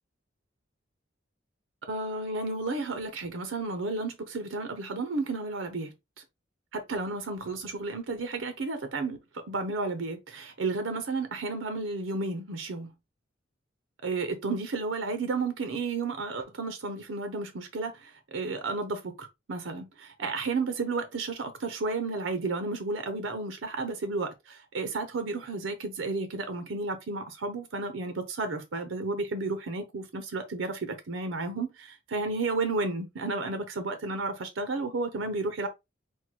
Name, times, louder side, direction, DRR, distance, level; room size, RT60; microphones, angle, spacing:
voice 1, 1.9-5.9 6.7-12.9 14.0-35.7, right 3 dB, 90° right, 0.7 m, -32 dB
4.5 x 2.1 x 4.4 m
head